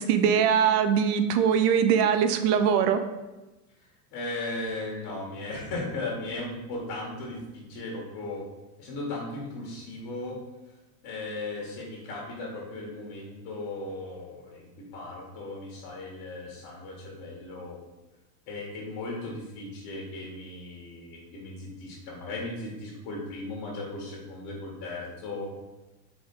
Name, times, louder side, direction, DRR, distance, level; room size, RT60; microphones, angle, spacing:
voice 1, 0.0-3.0, right 7 dB, 70° right, 9 dB, 0.8 m, -22 dB
voice 2, 4.1-8.4 8.8-10.4 11.0-17.8 18.5-25.5, left 2 dB, 50° left, -2 dB, 1.9 m, -37 dB
4.7 x 3.7 x 5.4 m, 1.1 s
supercardioid pair, 120°, 48 cm